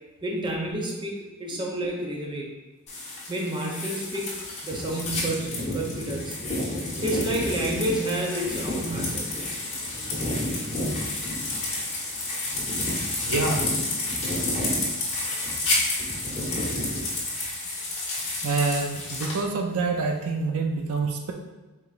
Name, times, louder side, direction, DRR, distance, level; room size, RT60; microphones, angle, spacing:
voice 1, 0.2-2.5 3.3-4.3 4.6-6.3 7.0-9.3 13.1-13.3 16.5-17.0 18.1-18.2, right 1 dB, 20° right, -1 dB, 0.6 m, -30 dB
sound 1, 2.9-19.4, left 2 dB, 30° left, 1.3 m, -29 dB
voice 2, 13.2-13.7 18.4-21.3, right 4 dB, 70° right, 3 dB, 0.4 m, -26 dB
4.7 x 4.0 x 2.5 m, 1.2 s
head